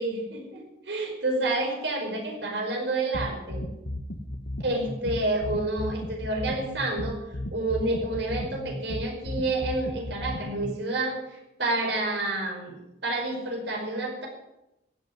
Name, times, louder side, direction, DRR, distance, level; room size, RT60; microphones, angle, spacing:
voice 1, 0.0-3.7 4.6-7.2 7.5-12.8 13.0-14.3, right 2 dB, 85° right, 2 dB, 5.2 m, -29 dB
sound 1, 3.1-10.7, left 1 dB, 80° left, 1.5 m, -34 dB
15.5 x 8.3 x 9.4 m, 0.88 s
head